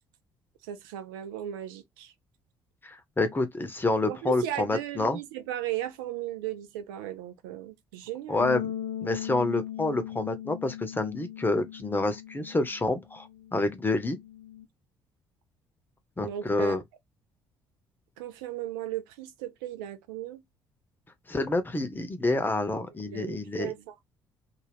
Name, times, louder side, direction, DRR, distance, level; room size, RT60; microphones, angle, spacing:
voice 1, 0.6-2.1 4.1-8.5 16.2-16.8 18.2-20.4 23.0-23.9, right 11 dB, 70° right, 0.5 m, -36 dB
voice 2, 2.8-5.2 8.3-8.7 9.0-14.2 16.2-16.8 21.3-23.7, left 2 dB, 15° left, 0.8 m, -28 dB
Bass guitar, 8.4-14.6, left 10 dB, 50° left, 0.8 m, -39 dB
2.5 x 2.4 x 3.4 m
figure-of-eight pair, 50°, 12 cm